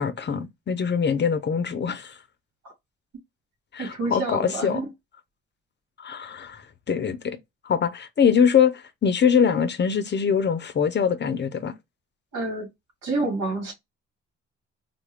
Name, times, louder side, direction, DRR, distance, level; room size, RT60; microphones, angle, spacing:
voice 1, 0.0-2.2 3.7-4.9 6.0-7.4 7.6-11.7, left 7 dB, 35° left, 0.6 m, -23 dB
voice 2, 3.8-4.9 12.3-12.7 13.0-13.7, right 2 dB, 80° right, 2.1 m, -28 dB
3.5 x 2.4 x 3.4 m
cardioid pair, 90°, 30 cm